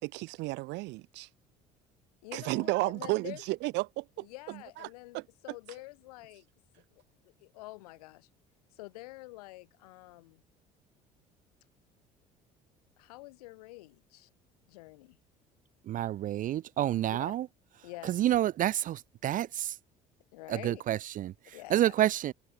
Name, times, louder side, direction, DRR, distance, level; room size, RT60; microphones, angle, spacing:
voice 1, 0.0-1.3 2.3-4.9 5.1-5.2, right 22 dB, 60° right, 3.6 m, -33 dB
voice 2, 2.2-3.4 4.2-6.5 6.9-8.3 8.7-10.4 13.0-14.3 14.7-15.2 17.1-17.4 17.8-18.2 20.3-20.8 21.5-21.9, left 20 dB, 70° left, 6.2 m, -47 dB
voice 3, 15.8-17.5 18.0-19.8 20.5-22.3, right 12 dB, 40° right, 0.6 m, -29 dB
figure-of-eight pair, 60°, 20 cm